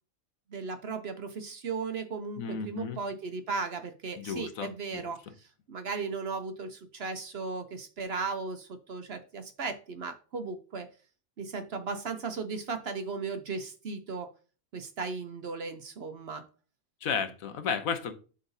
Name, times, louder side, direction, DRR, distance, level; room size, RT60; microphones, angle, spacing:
voice 1, 0.5-10.9 11.4-14.3 14.7-16.4, right 4 dB, 55° right, 0.9 m, -36 dB
voice 2, 2.4-3.0 4.2-5.0 17.0-18.1, left 6 dB, 75° left, 1.3 m, -33 dB
11.5 x 3.9 x 2.7 m
omnidirectional pair, 1.5 m